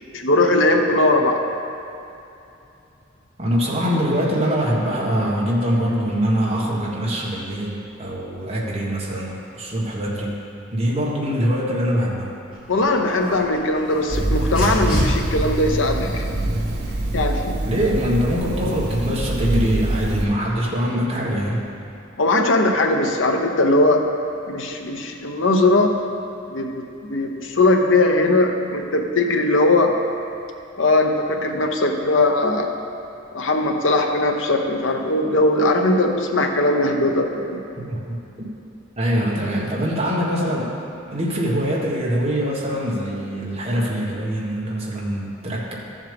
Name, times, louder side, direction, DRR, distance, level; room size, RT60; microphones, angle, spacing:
voice 1, 0.1-1.4 12.7-16.3 17.1-17.6 22.2-24.1 24.5-26.0 26.5-30.0 30.8-32.7 33.3-37.6, left 2 dB, 75° left, 3 dB, 0.9 m, -19 dB
voice 2, 3.4-10.4 10.7-12.3 17.6-21.6 37.8-38.2 39.0-40.7 41.1-45.8, equal, 35° right, -5 dB, 1.6 m, -23 dB
Dog, 12.5-21.6, left 1 dB, 45° left, 2.3 m, -34 dB
sound 1, 14.1-20.3, right 1 dB, 60° right, 0.8 m, -24 dB
13.5 x 7.3 x 3.5 m, 2.7 s
head